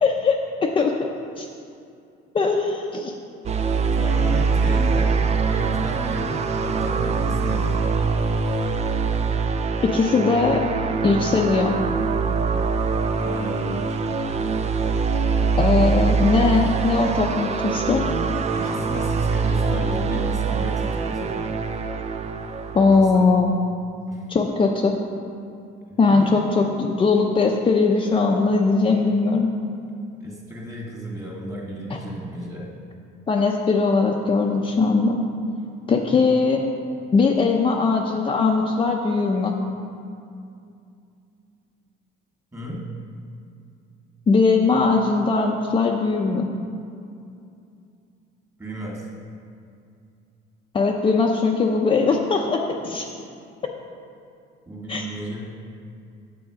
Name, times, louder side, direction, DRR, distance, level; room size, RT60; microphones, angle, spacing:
voice 1, 0.0-0.9 1.4-1.5 2.3-3.1 9.8-10.6 11.0-11.8 15.6-18.0 22.7-23.5 24.3-25.0 26.0-29.5 31.9-32.0 33.3-35.2 35.9-36.6 37.1-39.5 44.3-46.5 50.7-53.1 54.9-55.0, left 4 dB, 25° left, 0 dB, 0.7 m, -20 dB
sound 1, 3.4-22.9, right 5 dB, 35° right, 0.5 m, -23 dB
voice 2, 3.9-7.8 13.1-14.0 18.5-21.5 22.9-23.4 24.1-24.3 26.0-26.3 30.2-32.7 42.5-42.9 48.6-49.1 54.7-55.4, right 1 dB, 15° right, -3 dB, 2.2 m, -34 dB
8.9 x 7.9 x 5.0 m, 2.5 s
cardioid pair, 135°, 20 cm